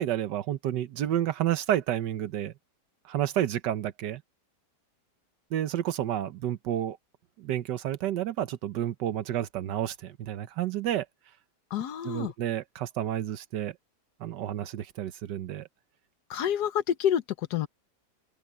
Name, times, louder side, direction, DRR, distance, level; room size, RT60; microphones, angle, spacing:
voice 1, 0.0-2.5 3.1-4.2 5.5-7.0 7.4-11.0 12.0-13.7 14.2-15.7, right 11 dB, 90° right, 1.5 m, -30 dB
voice 2, 11.7-12.3 16.3-17.7, left 10 dB, 75° left, 1.4 m, -28 dB
open air
omnidirectional pair, 1.8 m